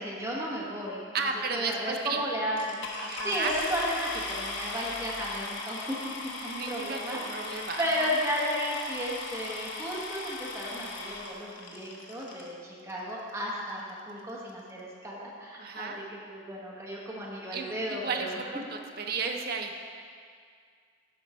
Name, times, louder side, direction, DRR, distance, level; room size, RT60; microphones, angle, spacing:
voice 1, 0.0-2.8 3.2-6.0 6.4-13.8 14.1-18.6, equal, 15° right, -5 dB, 1.2 m, -34 dB
voice 2, 1.1-2.2 3.0-3.5 6.5-8.1 15.6-16.0 17.5-19.8, right 4 dB, 50° right, 3 dB, 0.6 m, -34 dB
sound 1, 2.6-12.5 13.3-13.4 13.9-14.0 14.2-14.5, left 3 dB, 70° left, 0.9 m, -38 dB
11.0 x 4.4 x 4.3 m, 2.1 s
head